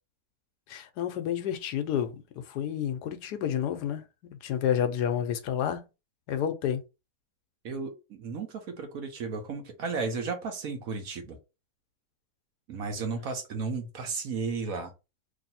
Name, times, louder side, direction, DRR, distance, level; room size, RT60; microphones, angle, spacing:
voice 1, 0.7-5.9 6.3-6.8, left 9 dB, 75° left, 1.1 m, -30 dB
voice 2, 7.6-11.4 12.7-14.9, right 4 dB, 60° right, 1.1 m, -34 dB
3.0 x 2.7 x 4.1 m
omnidirectional pair, 1.8 m